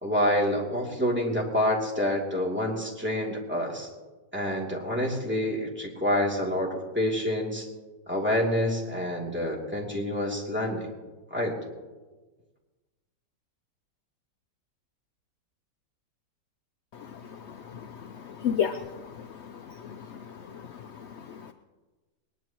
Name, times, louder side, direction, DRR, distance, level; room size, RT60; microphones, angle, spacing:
voice 1, 0.0-3.9 4.3-7.7 8.1-10.9 11.3-11.5, left 1 dB, 5° right, -3 dB, 2.9 m, -27 dB
voice 2, 18.2-18.8 19.2-19.3 19.8-20.1 20.5-20.6, left 8 dB, 65° left, 7 dB, 0.7 m, -29 dB
21.0 x 20.5 x 3.0 m, 1.3 s
omnidirectional pair, 1.8 m